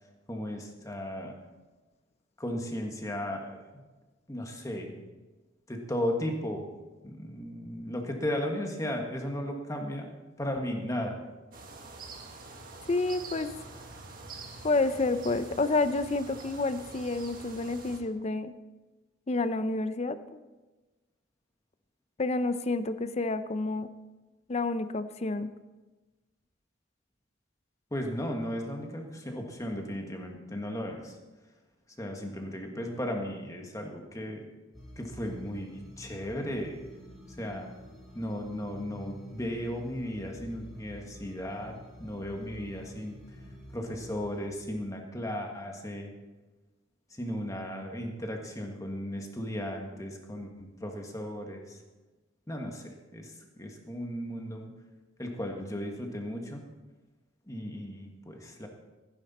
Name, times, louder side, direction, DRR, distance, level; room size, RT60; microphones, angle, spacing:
voice 1, 0.3-1.3 2.4-3.8 4.3-5.0 5.7-6.7 7.0-10.1 10.4-11.2 27.9-31.2 32.0-34.4 35.0-36.8 37.4-37.7 38.1-43.2 43.7-46.1 47.1-51.8 52.5-54.7 55.2-56.6 57.5-58.7, equal, 15° left, 2 dB, 1.5 m, -35 dB
sound 1, 11.5-18.0, right 3 dB, 45° right, 1.6 m, -46 dB
voice 2, 12.9-13.5 14.6-18.5 19.3-20.4 22.2-23.9 24.5-25.5, left 3 dB, 30° left, 12 dB, 0.5 m, -29 dB
sound 2, 34.7-44.5, equal, ahead, 3.4 m, -49 dB
15.0 x 10.0 x 4.2 m, 1.2 s
head